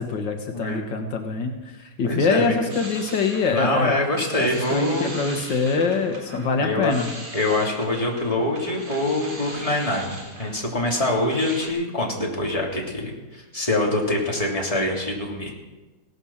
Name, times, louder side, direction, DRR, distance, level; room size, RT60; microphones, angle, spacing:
voice 1, 0.0-3.9 4.4-7.1, left 4 dB, 75° left, 4 dB, 2.0 m, -24 dB
voice 2, 2.0-2.6 3.5-5.1 6.6-6.9 7.3-15.5, left 1 dB, 20° left, -2 dB, 3.1 m, -24 dB
sound 1, 2.5-11.7, right 1 dB, 60° right, 3.8 m, -39 dB
17.0 x 11.5 x 7.2 m, 1.2 s
omnidirectional pair, 2.0 m